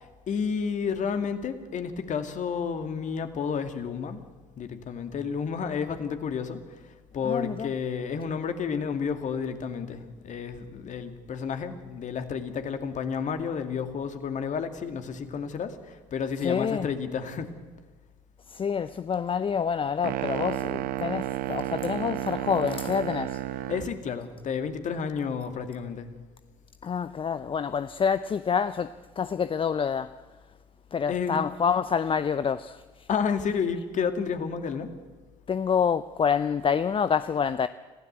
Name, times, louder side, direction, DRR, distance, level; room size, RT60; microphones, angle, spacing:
voice 1, 0.3-4.2 4.6-6.6 7.1-15.7 16.1-17.5 23.7-26.1 31.1-31.4 33.1-34.9, left 6 dB, 50° left, 2.3 m, -31 dB
voice 2, 7.2-7.7 16.4-16.9 18.5-23.4 26.8-30.2 30.9-33.1 35.5-37.7, left 6 dB, 30° left, 0.7 m, -27 dB
sound 1, 20.0-24.0, right 14 dB, 60° right, 0.9 m, -32 dB
25.5 x 15.5 x 8.1 m
hypercardioid pair, 55°, 17 cm